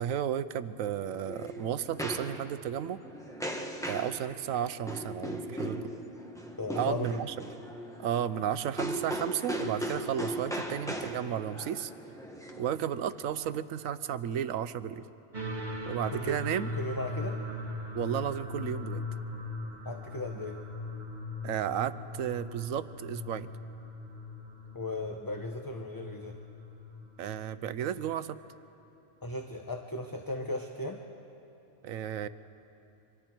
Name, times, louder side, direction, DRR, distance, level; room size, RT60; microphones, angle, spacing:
voice 1, 0.0-3.0 3.8-5.8 6.8-7.3 8.0-11.9 12.6-15.0 15.9-16.7 17.9-19.1 21.4-23.5 27.2-28.4 31.8-32.3, right 9 dB, 90° right, 13 dB, 1.1 m, -33 dB
sound 1, 0.8-13.3, equal, 5° left, 1.3 m, -38 dB
voice 2, 6.6-7.2 16.1-16.4 16.8-17.4 19.8-20.6 24.7-26.4 29.2-31.0, left 1 dB, 20° left, 3 dB, 0.8 m, -36 dB
sound 2, 15.3-28.0, left 2 dB, 35° right, 1.5 m, -40 dB
29.0 x 25.0 x 4.5 m, 2.9 s
omnidirectional pair, 1.4 m